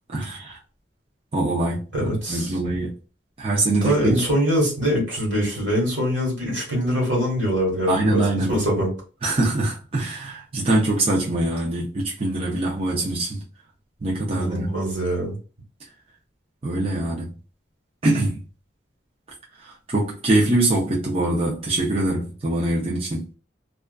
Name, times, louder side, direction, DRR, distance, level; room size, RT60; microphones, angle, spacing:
voice 1, 0.1-0.6 1.3-2.9 3.4-4.2 7.9-8.5 9.2-13.4 14.0-14.7 16.6-17.3 18.0-18.4 19.6-23.3, right 2 dB, 30° right, 0.5 m, -23 dB
voice 2, 1.9-2.5 3.8-8.9 14.3-15.4, equal, 80° right, 1.3 m, -23 dB
2.3 x 2.3 x 2.2 m
head